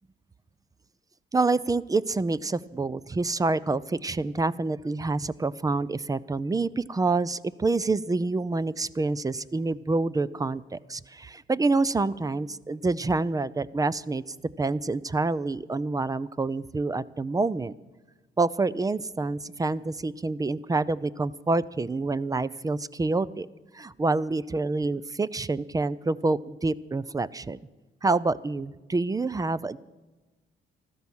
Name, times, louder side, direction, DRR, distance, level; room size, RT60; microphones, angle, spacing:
voice 1, 1.3-14.2 14.6-17.7 18.4-23.5 23.7-27.6 28.0-29.8, right 3 dB, 20° right, 18 dB, 0.5 m, -27 dB
14.0 x 13.0 x 6.2 m, 1.2 s
cardioid pair, 90°, 20 cm